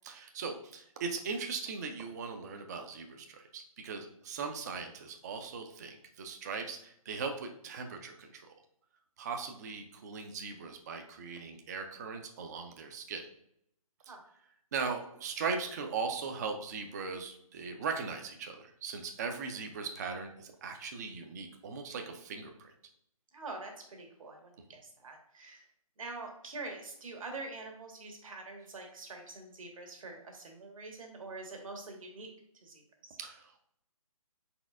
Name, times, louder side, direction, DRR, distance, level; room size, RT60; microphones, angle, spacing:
voice 1, 0.0-8.5 9.2-13.2 14.7-22.7 33.2-33.6, right 5 dB, 30° right, 4 dB, 0.4 m, -39 dB
voice 2, 23.3-25.6 26.0-32.3 32.5-33.2, right 3 dB, 65° right, 2 dB, 1.2 m, -45 dB
4.2 x 3.9 x 2.4 m, 0.71 s
figure-of-eight pair, 150°, 19 cm